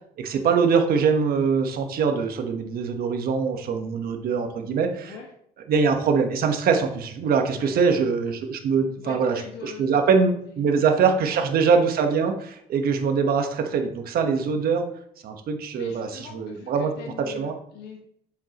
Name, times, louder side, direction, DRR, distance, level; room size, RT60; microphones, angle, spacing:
voice 1, 0.2-5.1 5.7-14.9 15.2-16.9 17.3-17.5, right 5 dB, 60° right, 5 dB, 1.2 m, -23 dB
voice 2, 7.4-8.0 9.0-10.9 11.3-11.5 15.7-18.0, left 6 dB, 85° left, 0 dB, 1.5 m, -42 dB
7.4 x 7.3 x 3.0 m, 0.68 s
cardioid pair, 110°, 17 cm